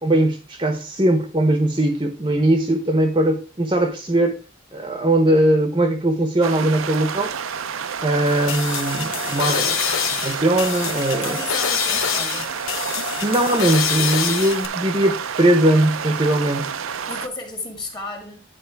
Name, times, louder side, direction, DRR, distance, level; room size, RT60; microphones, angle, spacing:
voice 1, 0.0-4.4 4.7-7.3 8.0-11.4 13.2-16.7, right 1 dB, 25° right, 0.9 m, -20 dB
sound 1, 6.4-17.3, right 7 dB, 90° right, 0.7 m, -29 dB
sound 2, 8.3-14.7, left 8 dB, 90° left, 0.9 m, -26 dB
voice 2, 11.1-12.5 17.1-18.4, left 2 dB, 20° left, 2.0 m, -33 dB
10.5 x 4.3 x 4.6 m
head